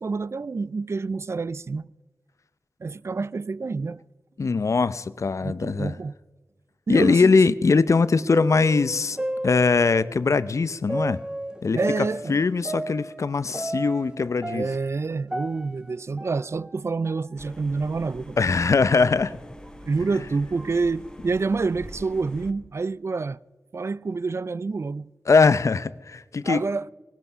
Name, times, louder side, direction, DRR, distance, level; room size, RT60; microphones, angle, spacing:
voice 1, 0.0-1.9 2.8-4.0 5.4-6.1 6.9-7.4 11.7-12.4 14.5-18.4 19.9-23.4 23.7-25.1 26.4-26.9, right 4 dB, 55° right, 0.4 m, -28 dB
voice 2, 4.4-6.0 6.9-9.2 9.4-11.2 11.6-14.7 18.4-19.4 25.3-26.6, left 4 dB, 65° left, 0.6 m, -21 dB
sound 1, 8.0-10.1 10.9-14.1 14.4-16.8 17.1-17.2 17.9-18.0 18.8-19.0 19.6-19.7 20.6-20.9, right 1 dB, 15° right, 1.0 m, -33 dB
sound 2, 17.4-22.5, equal, 15° left, 1.2 m, -44 dB
18.5 x 12.5 x 5.6 m
cardioid pair, 55°, 6 cm